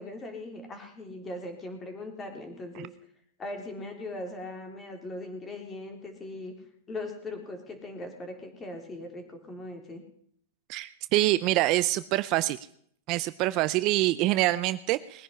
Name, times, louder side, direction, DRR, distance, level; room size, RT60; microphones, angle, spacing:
voice 1, 0.0-2.9 3.4-6.5 6.9-10.0, left 2 dB, 20° left, 5 dB, 3.5 m, -39 dB
voice 2, 10.7-12.6 13.1-15.2, right 17 dB, 40° right, 15 dB, 0.6 m, -25 dB
20.5 x 10.0 x 5.6 m, 0.64 s
supercardioid pair, 150°, 0 cm